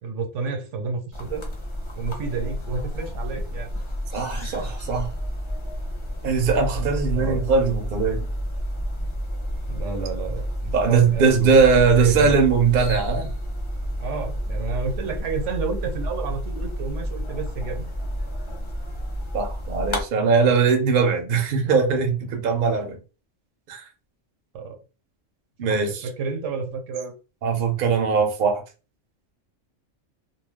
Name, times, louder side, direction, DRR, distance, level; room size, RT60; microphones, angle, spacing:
voice 1, 0.0-1.5 1.9-3.7 7.1-7.4 9.7-11.6 11.9-12.4 14.0-17.9 24.5-24.8 25.8-27.1, right 4 dB, 75° right, 1.0 m, -30 dB
sound 1, 1.1-20.0, equal, 30° left, 0.6 m, -30 dB
voice 2, 4.1-5.1 6.2-8.3 10.7-13.3 19.3-23.0 23.7-23.9 25.6-26.1 27.4-28.6, right 5 dB, 55° right, 0.7 m, -20 dB
2.3 x 2.3 x 3.4 m
omnidirectional pair, 1.3 m